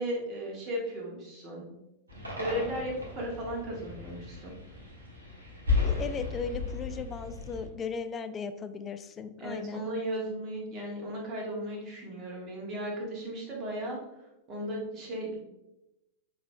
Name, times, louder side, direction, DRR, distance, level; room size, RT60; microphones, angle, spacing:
voice 1, 0.0-1.7 2.4-4.5 9.4-15.4, equal, 35° right, -2 dB, 1.5 m, -36 dB
sound 1, 2.1-7.7, left 4 dB, 80° right, 1.3 m, -34 dB
voice 2, 5.8-9.9, left 5 dB, 25° left, 10 dB, 0.4 m, -37 dB
6.6 x 3.3 x 2.2 m, 0.93 s
figure-of-eight pair, 90°, 0 cm